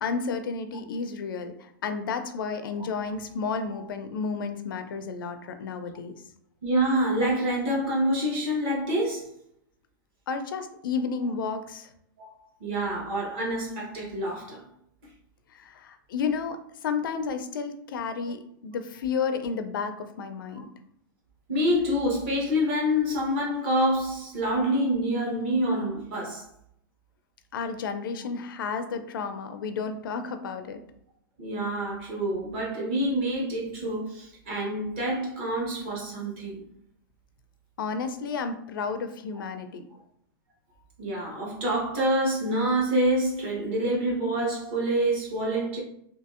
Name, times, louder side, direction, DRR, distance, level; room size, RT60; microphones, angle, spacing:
voice 1, 0.0-6.2 10.3-11.9 15.5-20.7 27.5-30.8 37.8-39.8, left 5 dB, 75° left, 0.4 m, -32 dB
voice 2, 6.6-9.3 12.2-12.3 12.6-14.6 21.5-26.5 31.4-36.6 41.0-45.8, equal, 30° right, 0.8 m, -27 dB
2.7 x 2.6 x 2.4 m
supercardioid pair, 180°, 11 cm